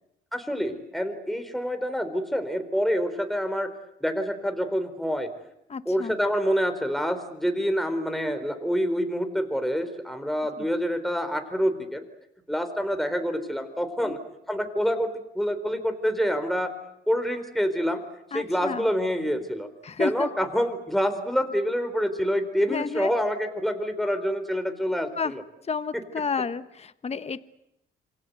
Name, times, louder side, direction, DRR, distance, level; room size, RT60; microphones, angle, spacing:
voice 1, 0.3-3.7 4.0-5.3 5.9-12.0 12.5-14.2 14.5-15.1 15.3-16.7 17.1-18.0 18.3-19.7 20.0-25.4, equal, ahead, 7 dB, 4.2 m, -27 dB
voice 2, 5.7-6.2 10.6-10.7 14.0-14.2 18.3-18.9 19.8-20.3 22.7-23.2 25.2-25.3 25.6-27.4, left 5 dB, 30° left, 12 dB, 1.2 m, -31 dB
27.5 x 23.0 x 8.1 m, 0.83 s
cardioid pair, 90°, 20 cm